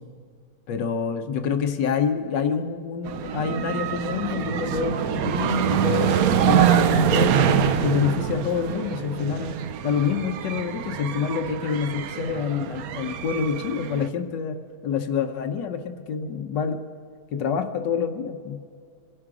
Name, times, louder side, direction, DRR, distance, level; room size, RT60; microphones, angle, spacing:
voice 1, 0.7-9.6 9.8-14.6 14.8-16.8 17.3-18.6, left 6 dB, 85° left, 7 dB, 1.6 m, -27 dB
sound 1, 3.0-14.1, right 9 dB, 65° right, 1.0 m, -25 dB
26.5 x 11.0 x 4.9 m, 2.2 s
omnidirectional pair, 1.9 m